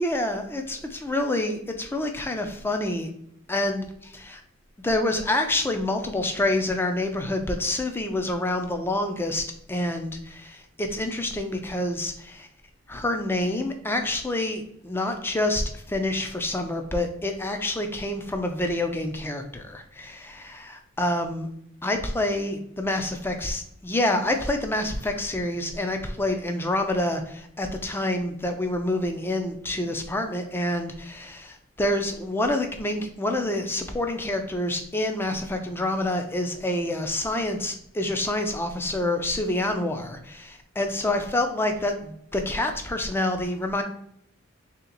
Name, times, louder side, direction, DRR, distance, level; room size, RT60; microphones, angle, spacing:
voice 1, 0.0-3.1 3.5-4.4 4.8-12.5 12.9-21.5 21.8-43.8, left 1 dB, 10° left, 5 dB, 0.4 m, -27 dB
3.3 x 2.9 x 3.8 m, 0.71 s
head